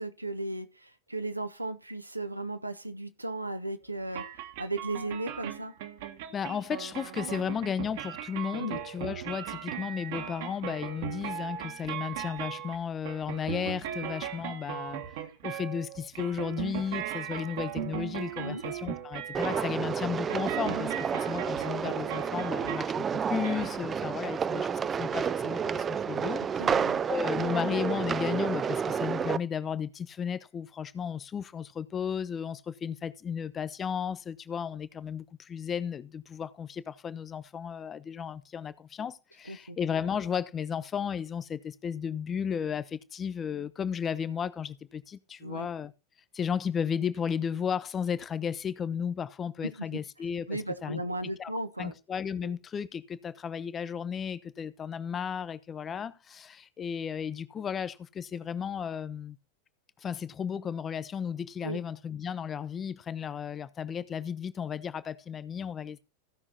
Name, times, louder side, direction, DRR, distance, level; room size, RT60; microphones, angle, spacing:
voice 1, 0.0-5.7 8.5-8.8 18.4-18.6 20.9-21.0 26.2-26.3 26.6-27.0 39.5-39.8 45.4-45.7 49.6-49.9 50.5-51.9 52.4-52.5 61.6-61.8, right 2 dB, 85° right, 1.3 m, -36 dB
sound 1, 4.1-23.0 23.4-23.8, right 10 dB, 50° right, 1.7 m, -38 dB
voice 2, 6.3-15.0 15.4-26.7 27.1-45.9 46.3-51.0 51.4-51.5 51.8-59.4 60.0-66.0, left 7 dB, 25° left, 0.8 m, -34 dB
sound 2, 19.3-29.4, right 7 dB, 20° right, 0.5 m, -30 dB
16.0 x 6.1 x 4.1 m
figure-of-eight pair, 90°, 0 cm